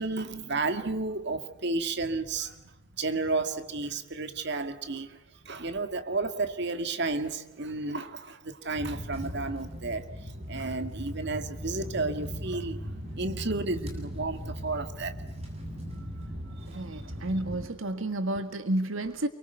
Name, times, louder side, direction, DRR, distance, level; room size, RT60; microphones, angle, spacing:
voice 1, 0.0-2.6 3.0-5.2 5.4-15.2 15.9-16.1 16.4-17.1, right 3 dB, 55° right, 9 dB, 2.1 m, -32 dB
sound 1, 8.8-17.7, equal, 30° right, 7.6 m, -38 dB
voice 2, 16.7-19.3, right 1 dB, 75° right, 9 dB, 1.8 m, -31 dB
29.0 x 24.0 x 8.0 m, 0.97 s
head